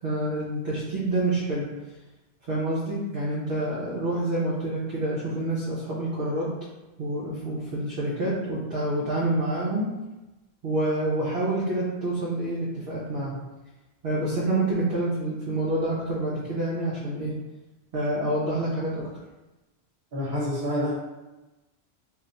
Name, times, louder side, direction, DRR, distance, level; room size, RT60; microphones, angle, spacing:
voice 1, 0.0-1.7 2.5-6.5 7.0-9.9 10.6-13.4 14.0-17.4 17.9-19.1, right 1 dB, 65° right, -7 dB, 0.9 m, -27 dB
voice 2, 20.1-20.9, left 1 dB, 50° right, -6 dB, 1.3 m, -27 dB
2.4 x 2.3 x 4.0 m, 1.1 s
omnidirectional pair, 1.1 m